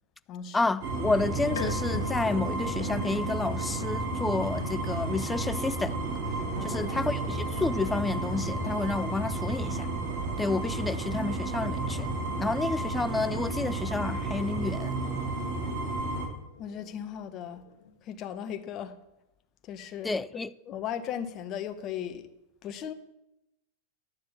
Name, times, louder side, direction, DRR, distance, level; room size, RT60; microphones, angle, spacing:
voice 1, 0.5-6.0 6.6-9.9 10.4-12.1 12.4-14.9 20.0-20.5, left 3 dB, 10° left, 0.4 m, -30 dB
sound 1, 0.8-16.3, right 2 dB, 55° right, 2.4 m, -32 dB
sound 2, 0.9-4.3 6.2-8.5 10.5-15.7 16.2-18.0, left 6 dB, 80° left, 1.4 m, -44 dB
voice 2, 6.5-7.0 16.6-17.6 18.0-19.0 19.6-20.2 20.7-22.3 22.6-22.9, left 9 dB, 40° left, 1.1 m, -37 dB
11.0 x 6.6 x 7.2 m
hypercardioid pair, 110°, 0 cm